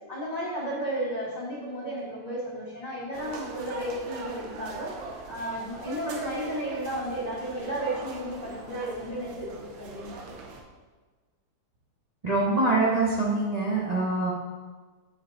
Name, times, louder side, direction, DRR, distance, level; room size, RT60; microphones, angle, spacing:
voice 1, 0.1-4.9 5.3-10.2, right 1 dB, 20° left, -7 dB, 1.7 m, -33 dB
sound 1, 3.1-10.6, right 3 dB, 80° right, 1.5 m, -41 dB
voice 2, 12.2-14.3, right 2 dB, 50° right, -6 dB, 0.4 m, -24 dB
7.0 x 4.5 x 3.8 m, 1.4 s
omnidirectional pair, 2.1 m